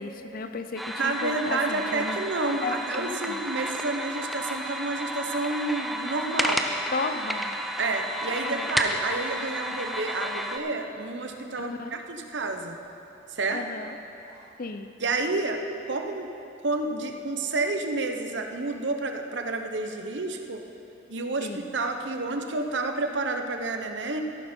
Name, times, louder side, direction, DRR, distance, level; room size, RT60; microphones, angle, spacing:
voice 1, 0.0-2.2 2.6-3.4 6.9-7.6 8.4-8.7 9.4-9.5 11.6-11.9 13.5-14.0 14.6-14.9 21.4-21.7, left 3 dB, 50° left, 8 dB, 0.6 m, -34 dB
sound 1, 0.8-10.6, equal, ahead, 0.6 m, -32 dB
voice 2, 1.0-6.7 7.8-12.8 13.3-13.6 15.0-15.6 15.9-16.3 16.6-20.6 21.1-24.2, right 3 dB, 70° right, 5 dB, 1.0 m, -30 dB
sound 2, 7.8-8.5 8.8-10.0 10.3-10.4 11.4-11.5 12.3-12.7 14.2-14.4, equal, 30° left, 3.1 m, -50 dB
13.5 x 12.0 x 4.5 m, 2.8 s
head